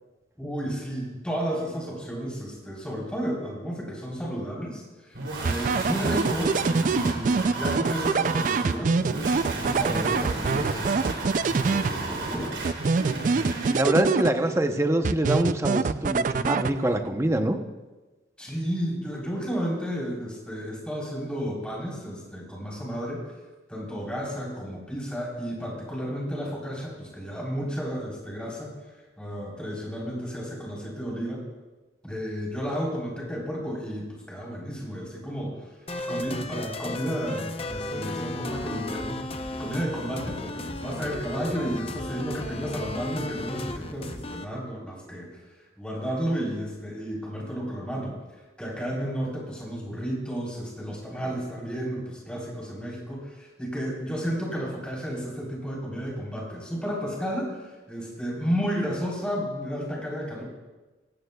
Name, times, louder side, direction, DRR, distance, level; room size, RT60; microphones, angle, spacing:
voice 1, 0.4-11.2 11.6-12.6 18.4-23.2 23.7-28.7 29.2-31.4 32.0-35.7 36.1-45.4 45.8-48.1 48.6-60.4, equal, 5° left, -4 dB, 3.7 m, -32 dB
sound 1, 5.1-13.9, right 3 dB, 80° right, 3.0 m, -33 dB
sound 2, 5.4-12.3 12.6-14.7 15.0-17.1, right 4 dB, 45° right, 0.3 m, -25 dB
voice 2, 13.7-17.6, right 1 dB, 15° right, 6 dB, 0.7 m, -25 dB
sound 3, 35.9-44.4, left 2 dB, 30° left, 0.7 m, -34 dB
18.5 x 15.5 x 2.3 m, 1.2 s
head